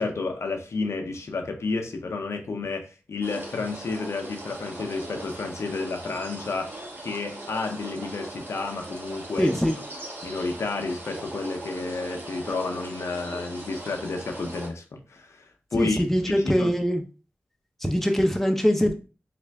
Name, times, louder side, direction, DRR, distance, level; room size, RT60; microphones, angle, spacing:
voice 1, 0.0-9.6 10.2-16.7, left 3 dB, 90° left, 0.5 m, -31 dB
sound 1, 3.2-14.7, right 1 dB, 50° right, 1.2 m, -39 dB
voice 2, 9.4-9.8 15.7-17.0 17.8-18.9, equal, 5° left, 0.6 m, -22 dB
3.2 x 2.4 x 3.3 m
cardioid pair, 45°, 5 cm